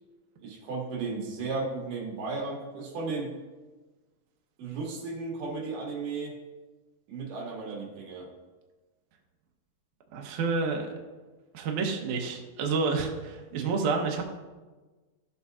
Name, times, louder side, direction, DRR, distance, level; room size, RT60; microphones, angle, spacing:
voice 1, 0.4-3.3 4.6-6.4 7.1-8.3 13.5-13.8, right 3 dB, 60° right, -2 dB, 3.0 m, -35 dB
voice 2, 10.1-10.9 11.5-14.2, right 4 dB, 85° right, 1 dB, 1.7 m, -29 dB
15.0 x 6.8 x 2.4 m, 1.2 s
omnidirectional pair, 4.9 m